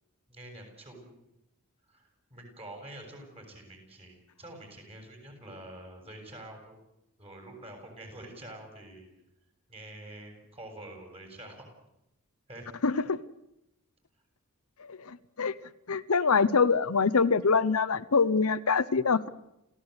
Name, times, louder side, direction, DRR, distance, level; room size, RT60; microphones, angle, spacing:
voice 1, 0.3-1.3 1.9-6.8 7.2-9.1 9.7-11.7 12.5-12.7, right 1 dB, 30° right, 3 dB, 7.4 m, -47 dB
voice 2, 12.8-13.2 14.9-15.5 15.9-19.3, left 5 dB, 80° left, 13 dB, 0.9 m, -25 dB
29.0 x 16.0 x 8.2 m, 0.86 s
head